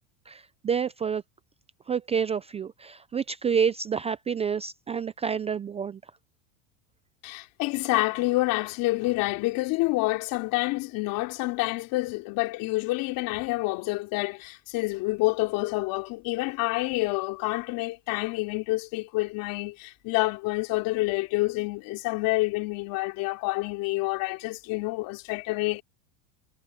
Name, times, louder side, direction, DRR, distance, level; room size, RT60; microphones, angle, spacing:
voice 1, 0.3-1.2 1.9-6.0, right 6 dB, 15° right, 0.5 m, -28 dB
voice 2, 7.2-25.8, left 21 dB, 55° left, 3.2 m, -28 dB
supercardioid pair, 125°, 40 cm